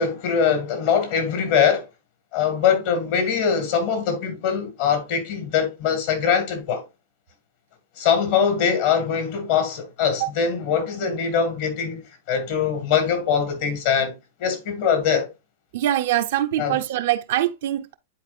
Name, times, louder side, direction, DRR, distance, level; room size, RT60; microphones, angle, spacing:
voice 1, 0.0-1.9 2.3-6.8 8.0-14.1 14.4-15.3 16.6-16.8, left 7 dB, 55° left, 2.3 m, -22 dB
voice 2, 15.7-17.9, right 13 dB, 65° right, 0.6 m, -23 dB
10.5 x 4.2 x 2.5 m
hypercardioid pair, 115°, 0 cm